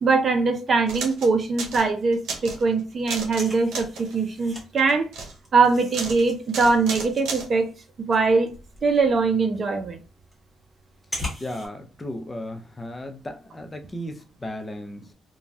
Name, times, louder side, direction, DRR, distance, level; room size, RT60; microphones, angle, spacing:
voice 1, 0.0-5.1 5.5-7.7 8.0-8.5 8.8-10.0, right 4 dB, 45° right, 0.6 m, -22 dB
sound 1, 0.9-1.3 1.6-2.6 3.1-3.5 3.7-4.1 4.8-5.3 5.9-6.2 6.5-7.5, right 4 dB, 85° right, 0.8 m, -33 dB
sound 2, 1.2-1.8 2.0-2.1 2.4-4.7 5.0-11.7, left 1 dB, 5° right, 1.4 m, -40 dB
voice 2, 11.4-15.0, left 1 dB, 20° left, 0.5 m, -35 dB
3.0 x 2.2 x 2.6 m
cardioid pair, 90°, 0 cm